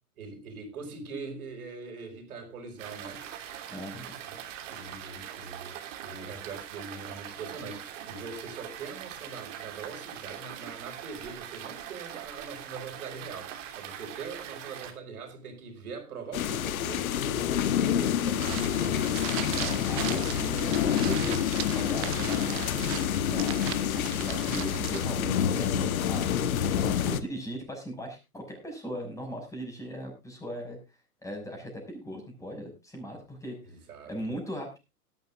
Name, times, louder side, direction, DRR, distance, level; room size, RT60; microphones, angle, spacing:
voice 1, 0.2-3.3 4.2-19.0 25.1-25.4 26.6-26.8 33.6-34.1, right 4 dB, 70° right, 4.8 m, -42 dB
sound 1, 2.8-14.9, right 10 dB, 55° right, 2.9 m, -42 dB
voice 2, 3.7-4.2 19.4-23.0 23.3-30.8 31.2-33.6 34.1-34.8, equal, 5° left, 5.8 m, -39 dB
sound 2, 16.3-27.2, left 9 dB, 65° left, 1.3 m, -28 dB
sound 3, 18.4-25.1, right 15 dB, 30° right, 1.0 m, -38 dB
18.5 x 12.0 x 2.4 m
hypercardioid pair, 120°, 45 cm